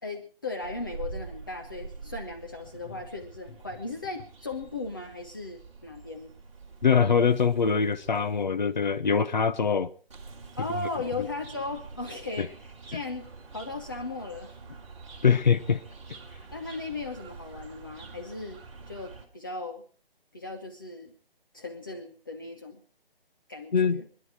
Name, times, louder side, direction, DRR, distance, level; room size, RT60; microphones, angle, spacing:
voice 1, 0.0-6.3 10.6-14.5 16.5-18.6 18.9-19.8 20.3-21.1 21.5-22.8 23.5-24.1, left 3 dB, 20° left, 0.8 m, -37 dB
sound 1, 0.6-8.4 10.1-19.3, right 4 dB, 30° right, 2.7 m, -46 dB
voice 2, 6.8-9.9 11.2-11.3 12.4-12.5 15.2-15.8 23.7-24.0, left 6 dB, 50° left, 0.9 m, -23 dB
27.0 x 11.0 x 4.4 m
figure-of-eight pair, 165°, 30 cm